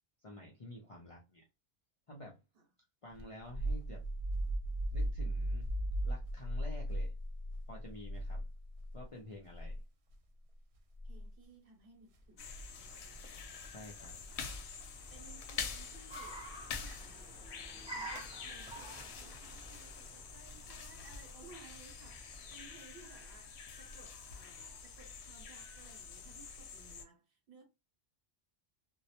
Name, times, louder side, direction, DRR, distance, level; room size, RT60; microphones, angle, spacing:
voice 1, 0.2-1.5 2.1-2.4 3.0-4.0 4.9-5.7 6.0-7.1 7.7-8.5 8.9-9.8 13.7-14.2, left 1 dB, 50° left, 0.4 m, -50 dB
sound 1, 3.2-9.0 9.5-9.8 11.0-11.3 12.5-12.9, right 1 dB, 85° right, 0.8 m, -37 dB
voice 2, 11.0-13.7 14.3-14.7 15.1-27.6, right 4 dB, 60° right, 1.0 m, -60 dB
sound 2, 12.4-27.1, left 5 dB, 90° left, 0.9 m, -47 dB
Car, 12.5-22.8, right 1 dB, 5° right, 0.5 m, -51 dB
2.1 x 2.0 x 2.8 m
omnidirectional pair, 1.1 m